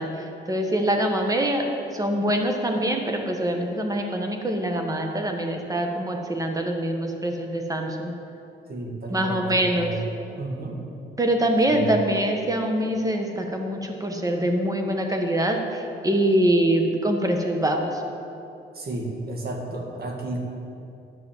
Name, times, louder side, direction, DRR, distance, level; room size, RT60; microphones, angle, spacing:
voice 1, 0.0-1.6 1.9-8.1 9.1-9.9 11.2-18.0, right 1 dB, 15° right, 3 dB, 1.4 m, -24 dB
voice 2, 8.7-10.0 10.3-10.8 11.7-11.9 18.7-20.4, right 2 dB, 50° right, 1 dB, 2.0 m, -32 dB
11.0 x 6.3 x 7.4 m, 2.8 s
cardioid pair, 90°, 20 cm